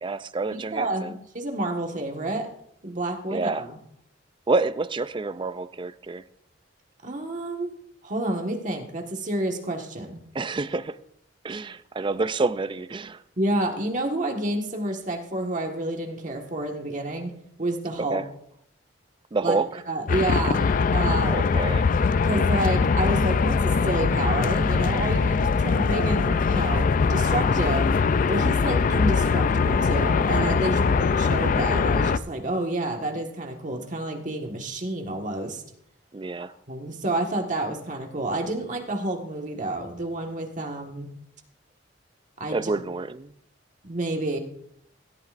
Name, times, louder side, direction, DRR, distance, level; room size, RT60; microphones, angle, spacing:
voice 1, 0.0-1.1 3.3-3.6 4.5-6.2 10.3-11.0 11.4-13.2 18.1-18.2 19.3-19.7 21.3-21.9 30.7-31.1 36.1-36.5 42.5-43.3, right 3 dB, 25° right, 14 dB, 0.4 m, -28 dB
voice 2, 0.7-2.5 2.8-3.8 7.0-7.7 8.0-10.2 13.4-17.3 17.6-18.2 19.4-19.6 19.9-21.5 22.2-27.9 28.3-35.6 36.7-41.1 42.4-42.8 43.8-44.4, right 1 dB, 45° right, 3 dB, 1.6 m, -29 dB
sound 1, 20.1-32.2, left 5 dB, 45° left, 0.4 m, -22 dB
17.5 x 13.0 x 2.5 m, 0.70 s
head